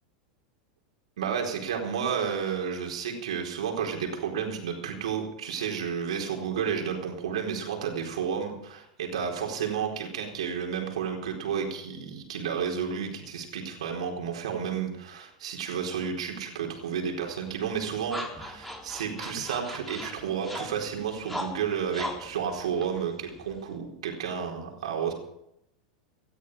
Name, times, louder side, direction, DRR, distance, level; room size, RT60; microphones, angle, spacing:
voice 1, 1.2-25.1, right 7 dB, 75° right, 2 dB, 4.3 m, -31 dB
sound 1, 17.3-23.8, equal, 5° left, 4.2 m, -40 dB
18.5 x 13.5 x 4.9 m, 0.80 s
hypercardioid pair, 100°, 3 cm